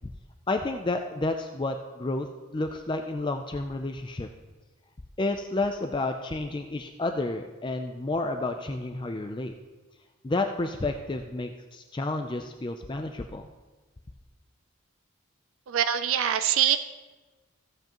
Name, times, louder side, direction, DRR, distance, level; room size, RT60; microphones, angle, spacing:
voice 1, 0.5-2.3 2.5-4.3 5.2-9.5 10.2-13.5, left 2 dB, 20° left, 5 dB, 0.4 m, -30 dB
voice 2, 15.7-16.8, right 10 dB, 75° right, 10 dB, 0.4 m, -24 dB
14.5 x 7.9 x 3.0 m, 1.2 s
head